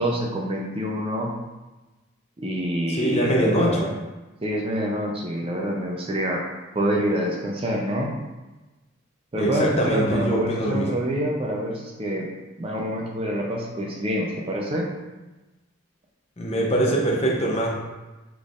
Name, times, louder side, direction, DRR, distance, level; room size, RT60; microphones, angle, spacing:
voice 1, 0.0-1.3 2.4-3.9 4.4-6.4 6.7-8.1 9.3-12.3 12.6-14.9, equal, 25° right, 0 dB, 0.5 m, -26 dB
voice 2, 2.9-3.9 9.4-10.9 16.4-17.7, right 1 dB, 30° left, -1 dB, 0.7 m, -23 dB
5.8 x 3.5 x 2.5 m, 1.1 s
head